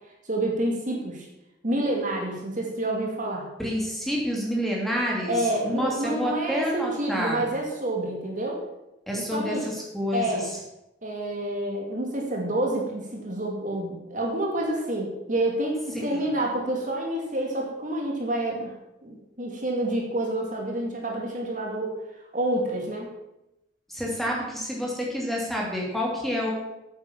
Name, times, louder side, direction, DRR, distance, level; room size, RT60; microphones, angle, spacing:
voice 1, 0.2-1.3 1.6-3.5 5.3-8.6 9.1-9.7 10.1-10.5 11.0-18.7 19.0-21.9 22.3-23.1, right 1 dB, 40° right, 0 dB, 2.4 m, -28 dB
voice 2, 3.6-7.5 9.1-10.4 15.9-16.3 23.9-26.5, equal, ahead, -3 dB, 2.8 m, -29 dB
9.1 x 8.8 x 7.2 m, 0.91 s
head